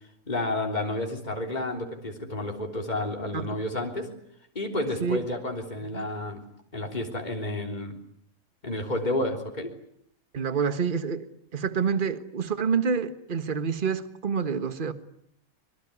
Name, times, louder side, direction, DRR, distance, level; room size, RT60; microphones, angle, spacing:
voice 1, 0.3-4.1 4.6-6.4 6.7-7.9 8.6-9.7, left 1 dB, 30° left, 2 dB, 3.7 m, -30 dB
voice 2, 10.3-11.3 11.5-14.9, right 6 dB, 40° right, 11 dB, 1.6 m, -27 dB
25.5 x 23.5 x 9.8 m, 0.69 s
omnidirectional pair, 1.4 m